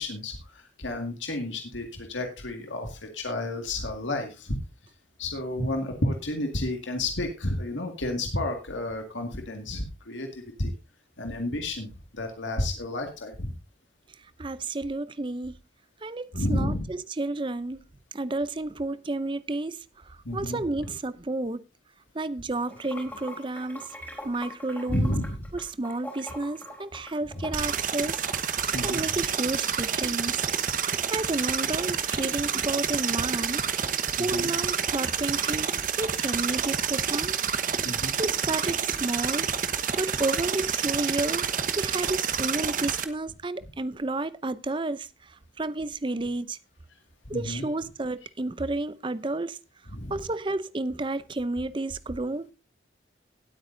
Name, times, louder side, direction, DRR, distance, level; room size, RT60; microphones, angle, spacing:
voice 1, 0.0-4.6 5.2-10.7 11.2-13.5 16.3-16.8 20.2-20.6 24.9-25.4 28.7-29.2 34.2-34.5 37.8-38.1 47.3-47.6 49.9-50.1, left 1 dB, 85° left, 2.0 m, -31 dB
voice 2, 14.4-15.6 16.0-17.8 18.1-21.7 22.1-23.9 24.2-25.1 25.5-30.4 30.8-33.7 34.2-37.4 38.2-39.5 40.0-46.6 47.3-49.6 50.1-52.5, right 2 dB, 25° right, 0.5 m, -31 dB
Water / Sink (filling or washing), 22.6-29.0, left 1 dB, 10° left, 3.9 m, -43 dB
sound 1, 27.5-43.0, right 7 dB, 45° right, 1.0 m, -28 dB
18.5 x 8.6 x 2.6 m
head